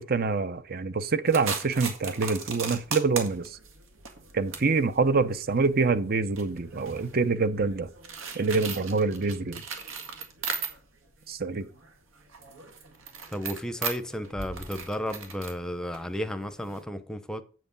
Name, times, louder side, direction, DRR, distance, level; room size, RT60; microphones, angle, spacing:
voice 1, 0.0-3.6 4.3-7.9 8.3-9.6 11.3-11.7, right 4 dB, 50° right, 0.8 m, -26 dB
sound 1, 1.3-11.1 11.4-16.8, right 5 dB, 80° right, 2.0 m, -38 dB
voice 2, 13.3-17.4, equal, 5° left, 0.8 m, -33 dB
7.8 x 7.8 x 5.4 m
head